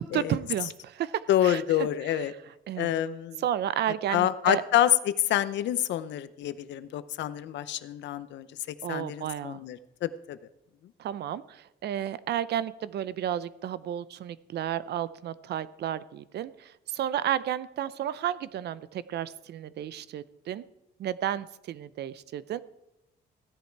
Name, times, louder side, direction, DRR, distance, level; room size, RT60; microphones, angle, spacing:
voice 1, 0.0-2.2 2.7-2.9 3.4-4.6 8.8-9.6 11.0-20.6 21.0-22.6, right 11 dB, 70° right, 16 dB, 0.6 m, -32 dB
voice 2, 1.3-2.3 2.8-3.4 4.1-10.4, left 11 dB, 90° left, 14 dB, 0.7 m, -27 dB
15.5 x 10.5 x 4.6 m, 0.89 s
cardioid pair, 155°, 18 cm